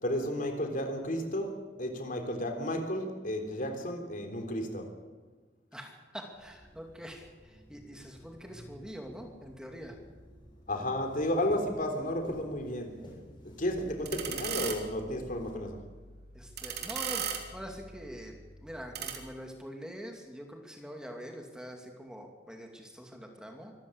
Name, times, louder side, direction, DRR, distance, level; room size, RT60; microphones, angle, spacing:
voice 1, 0.0-5.0 10.7-13.0 13.4-15.9, left 1 dB, 50° left, 3.6 m, -33 dB
voice 2, 5.7-10.0 16.3-23.7, equal, 5° right, 2.5 m, -44 dB
sound 1, 6.3-15.5, equal, 30° left, 7.7 m, -51 dB
sound 2, 13.7-19.2, right 7 dB, 65° right, 3.2 m, -39 dB
25.0 x 14.5 x 8.7 m
head